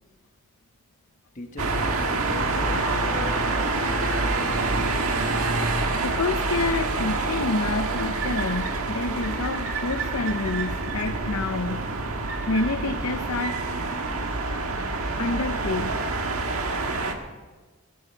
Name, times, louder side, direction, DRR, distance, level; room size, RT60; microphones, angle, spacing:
voice 1, 1.3-3.4, left 1 dB, 35° left, 4 dB, 1.4 m, -39 dB
sound 1, 1.6-17.1, right 3 dB, 80° right, 1.6 m, -27 dB
sound 2, 2.4-5.3, left 2 dB, 5° left, 1.9 m, -38 dB
voice 2, 6.0-11.8 12.5-13.6 15.2-16.0, left 3 dB, 70° left, 8 dB, 0.7 m, -28 dB
16.5 x 12.5 x 4.5 m, 1.3 s
head